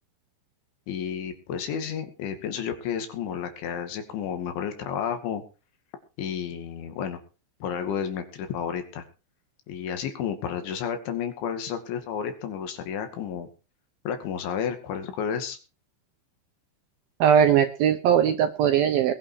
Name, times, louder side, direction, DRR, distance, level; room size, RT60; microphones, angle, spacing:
voice 1, 0.9-5.4 6.2-7.2 7.6-9.0 9.7-13.5 14.1-15.6, left 8 dB, 75° left, 7 dB, 4.6 m, -31 dB
voice 2, 17.2-19.1, right 8 dB, 75° right, 7 dB, 2.3 m, -20 dB
20.5 x 8.9 x 4.7 m, 0.33 s
omnidirectional pair, 5.4 m